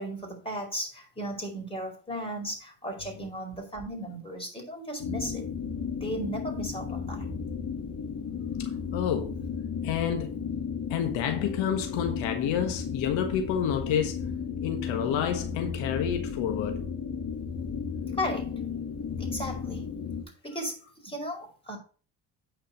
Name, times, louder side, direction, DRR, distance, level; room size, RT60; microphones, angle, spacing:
voice 1, 0.0-5.4 6.0-7.2 18.1-18.5 19.2-19.9 20.4-21.8, equal, 10° left, 4.8 m, -35 dB
sound 1, 5.0-20.2, left 6 dB, 60° left, 2.8 m, -34 dB
voice 2, 8.6-9.4 9.8-10.4 10.9-14.3 14.6-16.8, left 8 dB, 80° left, 1.5 m, -29 dB
9.0 x 5.2 x 5.7 m
supercardioid pair, 75°, 45 cm